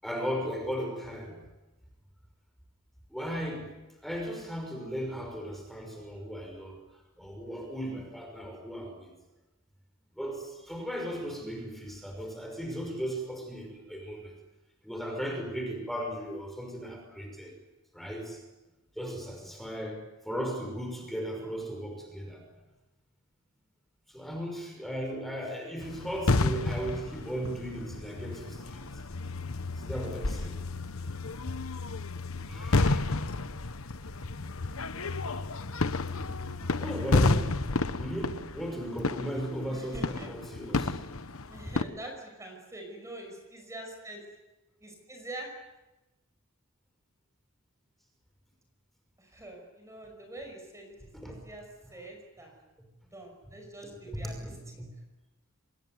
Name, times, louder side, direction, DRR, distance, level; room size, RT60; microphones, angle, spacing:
voice 1, 0.0-1.4 3.1-3.7 4.0-6.8 7.2-9.1 10.1-14.3 14.8-17.5 17.9-18.4 19.0-20.0 20.2-22.4 24.1-28.9 29.8-30.6 32.5-33.1 36.8-37.6 38.0-41.1 51.1-51.4 54.1-54.9, equal, ahead, 2 dB, 5.8 m, -36 dB
sound 1, 25.8-41.8, left 3 dB, 80° left, 1.2 m, -31 dB
voice 2, 39.7-40.3 41.5-44.2 44.8-45.5 49.2-51.0 51.2-51.6 51.9-52.6 53.1-54.8, right 1 dB, 15° right, 2 dB, 5.8 m, -44 dB
26.0 x 21.5 x 9.5 m, 1.0 s
head